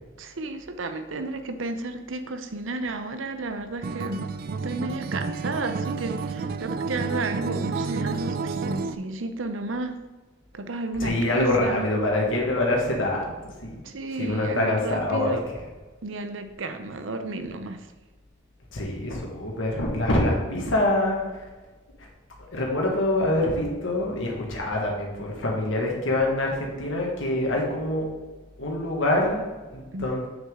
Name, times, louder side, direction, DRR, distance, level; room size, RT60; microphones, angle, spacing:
voice 1, 0.2-4.3 4.6-10.0 10.5-11.8 13.8-15.4 16.0-17.9 29.9-30.1, right 2 dB, 75° right, 8 dB, 0.7 m, -32 dB
Acoustic guitar, 3.8-9.0, right 4 dB, 50° right, 0.3 m, -30 dB
voice 2, 11.0-13.3 13.6-13.8 14.2-15.4 18.7-21.2 22.5-28.1 28.6-30.3, left 1 dB, 80° left, -1 dB, 1.7 m, -25 dB
7.3 x 6.3 x 3.7 m, 1.3 s
head